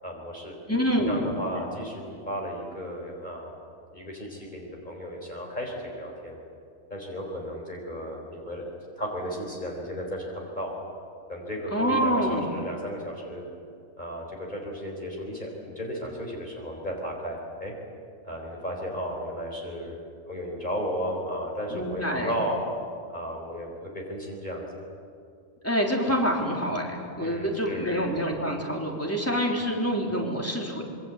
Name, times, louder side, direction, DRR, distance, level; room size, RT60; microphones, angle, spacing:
voice 1, 0.0-0.6 1.1-3.5 3.9-6.4 6.9-8.6 9.0-10.7 11.3-13.4 14.0-17.7 18.2-20.0 20.3-22.6 23.1-24.7 27.2-27.9, equal, 35° left, -1 dB, 4.3 m, -34 dB
voice 2, 0.7-1.4 11.7-12.5 21.7-22.4 25.6-30.8, equal, 10° left, 0 dB, 3.5 m, -26 dB
26.5 x 23.0 x 8.1 m, 2.4 s
omnidirectional pair, 1.4 m